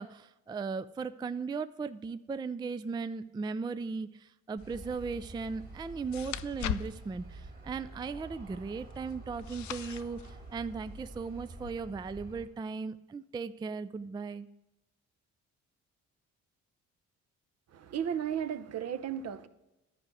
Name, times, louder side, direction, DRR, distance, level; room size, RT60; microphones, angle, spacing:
voice 1, 0.0-14.5, right 4 dB, 15° right, 0.3 m, -37 dB
sound 1, 4.6-11.7, left 12 dB, 70° left, 0.5 m, -43 dB
Aircraft, 4.6-12.5, right 2 dB, 30° right, 2.6 m, -48 dB
voice 2, 17.7-19.5, right 9 dB, 55° right, 0.8 m, -34 dB
11.0 x 4.8 x 7.7 m
cardioid pair, 90°, 30 cm